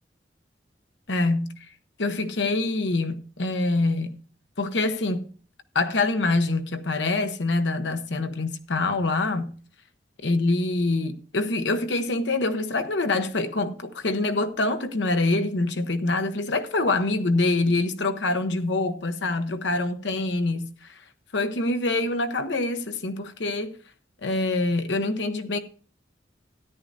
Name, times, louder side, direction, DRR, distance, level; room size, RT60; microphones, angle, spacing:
voice 1, 1.1-1.7 2.0-4.2 4.6-5.3 5.7-9.5 10.2-21.0 21.3-23.8 24.2-25.6, left 2 dB, 90° left, 0.9 m, -25 dB
13.5 x 10.5 x 2.6 m
head